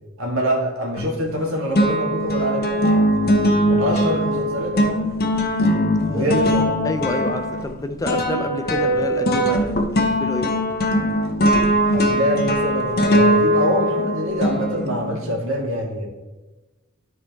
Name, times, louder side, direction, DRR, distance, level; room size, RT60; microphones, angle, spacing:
voice 1, 0.2-2.8 3.6-5.0 6.1-6.7 11.9-16.1, equal, 70° right, 2.1 m, -24 dB
sound 1, 1.0-1.4 1.8-15.2, equal, 45° left, 0.9 m, -20 dB
voice 2, 6.8-10.6, left 1 dB, 15° left, 0.5 m, -28 dB
12.5 x 4.7 x 3.5 m
head